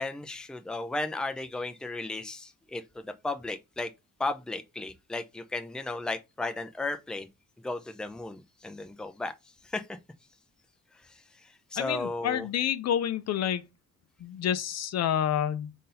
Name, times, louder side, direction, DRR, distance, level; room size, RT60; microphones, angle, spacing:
voice 1, 0.0-3.9 4.2-7.3 7.6-9.3 9.6-10.0 11.7-12.5, left 2 dB, 5° left, 0.5 m, -35 dB
voice 2, 11.8-13.6 14.2-15.7, left 10 dB, 60° left, 0.5 m, -28 dB
3.8 x 2.7 x 4.1 m
cardioid pair, 90°, 30 cm